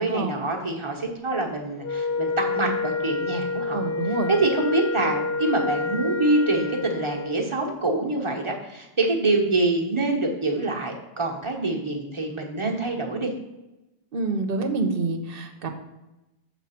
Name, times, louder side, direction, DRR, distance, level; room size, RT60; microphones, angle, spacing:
voice 1, 0.0-13.3, right 2 dB, 30° right, 0 dB, 1.2 m, -25 dB
Wind instrument woodwind instrument, 1.8-7.4, left 3 dB, 80° left, 0.9 m, -28 dB
voice 2, 3.7-4.3 14.1-15.7, right 3 dB, 65° right, 6 dB, 1.1 m, -27 dB
7.3 x 4.1 x 5.8 m, 0.97 s
omnidirectional pair, 1.0 m